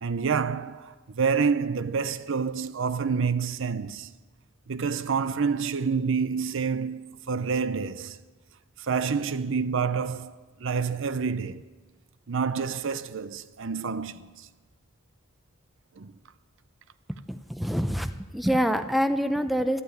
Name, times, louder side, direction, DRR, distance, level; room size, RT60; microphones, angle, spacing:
voice 1, 0.0-4.1 4.7-8.2 8.8-11.6 12.3-14.5 16.0-16.1, right 5 dB, 65° right, 0.6 m, -28 dB
voice 2, 17.3-19.8, equal, ahead, 0.6 m, -26 dB
12.5 x 11.5 x 9.2 m
head